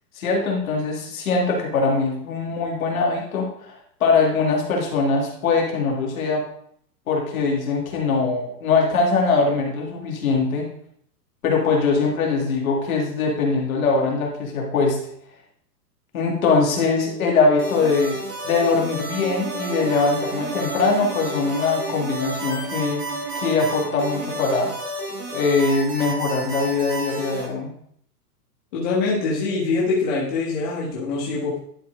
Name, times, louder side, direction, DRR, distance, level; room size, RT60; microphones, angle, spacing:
voice 1, 0.2-6.5 7.1-10.7 11.4-15.0 16.1-18.2 18.4-23.0 23.3-24.7 25.3-27.7, left 4 dB, 55° left, 0 dB, 2.1 m, -22 dB
sound 1, 17.6-27.4, right 1 dB, 20° right, 1.8 m, -32 dB
Bowed string instrument, 19.1-24.7, right 6 dB, 40° right, 1.3 m, -34 dB
voice 2, 28.7-31.6, left 3 dB, 30° left, -6 dB, 1.5 m, -24 dB
11.0 x 4.3 x 3.7 m, 0.66 s
hypercardioid pair, 170°, 50 cm